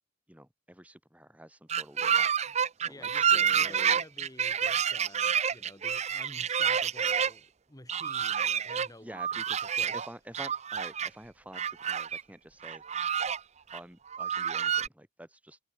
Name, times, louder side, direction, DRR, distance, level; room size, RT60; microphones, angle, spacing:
voice 1, 0.3-2.4 2.8-4.0 9.0-9.7 9.9-12.8 13.7-15.6, right 1 dB, 5° right, 3.7 m, -48 dB
sound 1, 1.7-7.3 7.9-8.9 9.2-10.1 10.3-11.1 11.5-12.2 12.6-13.4 13.7-13.8 14.1-14.9, right 8 dB, 35° right, 0.6 m, -28 dB
voice 2, 2.5-9.2 9.8-9.9, left 1 dB, 15° left, 2.5 m, -51 dB
head